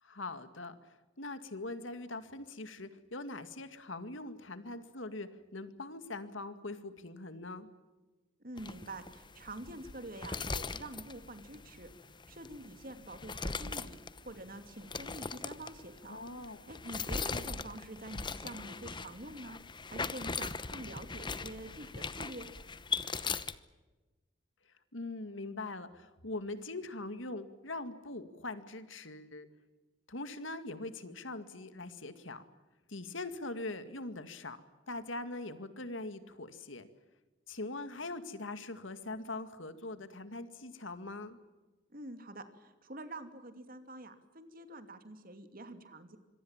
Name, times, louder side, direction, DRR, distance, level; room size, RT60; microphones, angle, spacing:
voice 1, 0.0-7.7 16.1-16.6 24.9-29.5 30.1-32.4 32.9-34.6 34.9-36.9 37.5-41.4, left 2 dB, 85° left, 11 dB, 2.2 m, -42 dB
voice 2, 8.4-11.9 12.3-14.0 14.2-19.6 19.9-22.5 41.9-46.2, right 1 dB, 50° right, 9 dB, 2.7 m, -46 dB
sound 1, 8.6-23.6, left 4 dB, 25° left, 1.0 m, -40 dB
26.5 x 23.0 x 7.4 m, 1.2 s
head